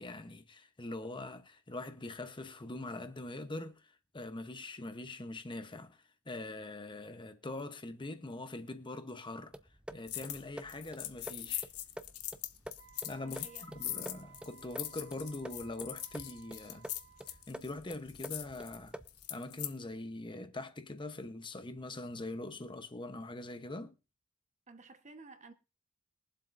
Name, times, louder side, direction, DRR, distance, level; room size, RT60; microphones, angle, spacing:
voice 1, 0.0-9.5 9.9-11.7 13.0-16.9 17.3-19.0 19.3-23.9, left 2 dB, 20° left, 0.9 m, -43 dB
sound 1, 9.5-19.3, right 1 dB, 5° right, 0.5 m, -49 dB
sound 2, 10.1-10.4 10.7-19.7, left 13 dB, 75° left, 0.9 m, -42 dB
Wind instrument woodwind instrument, 12.8-17.6, right 10 dB, 70° right, 1.5 m, -59 dB
voice 2, 13.2-14.0 24.7-25.5, right 3 dB, 30° right, 1.2 m, -54 dB
22.0 x 7.6 x 2.6 m
head